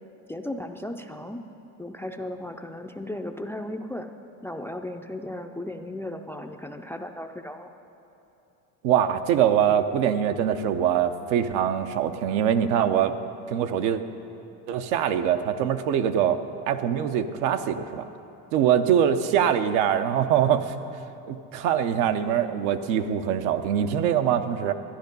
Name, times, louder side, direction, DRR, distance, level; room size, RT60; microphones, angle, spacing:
voice 1, 0.3-1.5 1.8-4.1 4.4-7.7, left 1 dB, 5° left, 6 dB, 0.4 m, -35 dB
voice 2, 8.8-13.1 13.5-14.0 14.7-16.4 16.7-18.0 18.5-20.7 21.3-24.7, right 9 dB, 75° right, 8 dB, 0.8 m, -23 dB
13.0 x 10.5 x 5.3 m, 3.0 s
supercardioid pair, 105°, 41 cm